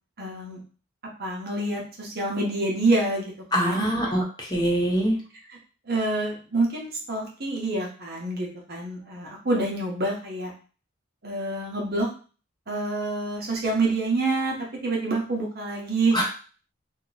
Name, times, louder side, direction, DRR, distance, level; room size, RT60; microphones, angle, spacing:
voice 1, 0.2-0.6 1.2-3.2 3.5-4.1 5.9-10.5 11.2-12.1 12.7-14.5 14.8-16.2, right 2 dB, 50° right, -1 dB, 0.9 m, -27 dB
voice 2, 3.5-5.2 16.1-16.2, right 1 dB, 20° left, -3 dB, 0.9 m, -24 dB
2.9 x 2.3 x 3.9 m, 0.37 s
head